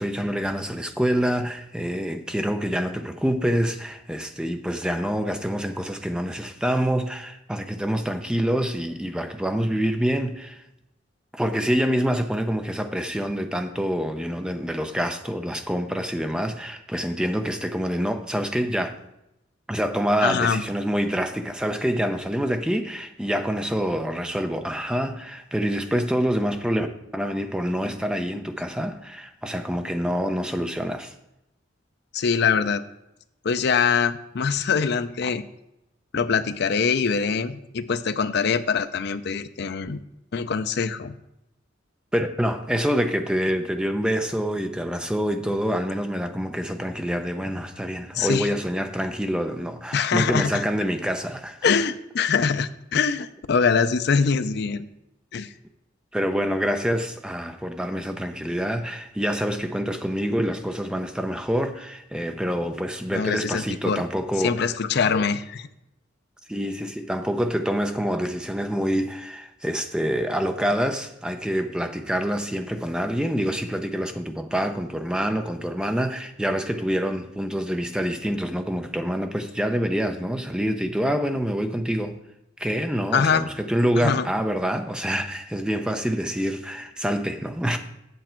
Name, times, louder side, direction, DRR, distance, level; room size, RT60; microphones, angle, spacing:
voice 1, 0.0-10.6 11.3-19.0 19.7-26.9 27.1-31.1 42.1-51.8 56.1-64.6 66.5-82.2 82.6-87.8, equal, 5° right, 0.5 m, -26 dB
voice 2, 20.2-20.6 32.1-32.8 33.4-35.4 36.1-40.0 40.3-41.1 48.1-48.5 49.9-50.6 51.6-54.9 55.3-55.5 63.1-64.0 64.4-65.7 83.1-83.5 84.0-84.3, left 6 dB, 55° left, 0.5 m, -23 dB
8.1 x 7.3 x 4.4 m
head